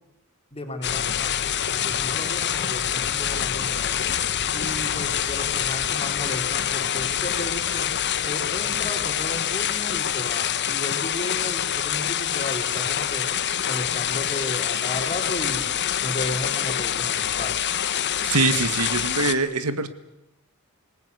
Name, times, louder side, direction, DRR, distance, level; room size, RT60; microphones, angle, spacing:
voice 1, 0.5-4.0 4.5-7.9 8.2-13.3 13.6-15.7 16.0-17.5, left 1 dB, 25° left, 4 dB, 3.9 m, -34 dB
sound 1, 0.8-19.3, left 9 dB, 50° left, 1.1 m, -26 dB
voice 2, 18.3-19.9, right 3 dB, 85° right, 11 dB, 1.8 m, -23 dB
27.0 x 19.0 x 8.3 m, 0.89 s
head